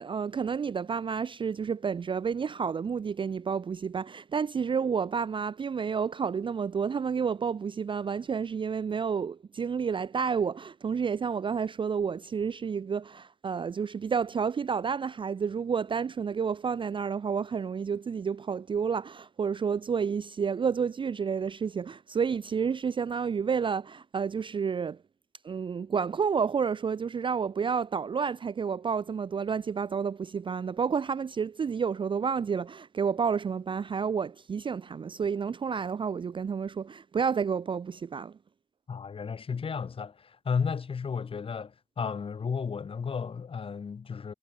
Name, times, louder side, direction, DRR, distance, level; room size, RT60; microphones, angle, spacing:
voice 1, 0.0-25.0 25.4-38.4, right 6 dB, 40° right, 0.4 m, -30 dB
voice 2, 38.9-44.3, left 6 dB, 45° left, 0.7 m, -33 dB
cardioid pair, 60°, 13 cm